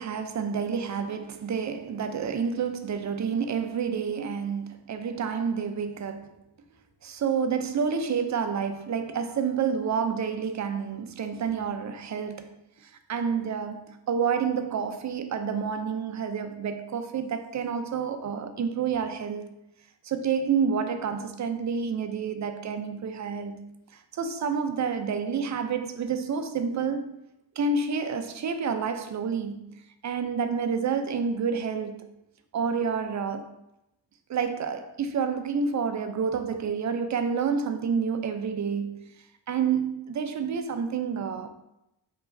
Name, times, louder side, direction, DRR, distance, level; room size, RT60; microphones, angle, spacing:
voice 1, 0.0-6.3 7.0-12.6 13.1-19.6 20.0-23.6 24.1-27.2 27.6-29.6 30.0-32.1 32.5-33.5 34.3-39.2 39.5-41.5, right 6 dB, 45° right, 0.4 m, -29 dB
4.7 x 3.1 x 2.5 m
wide cardioid pair, 100°, 44 cm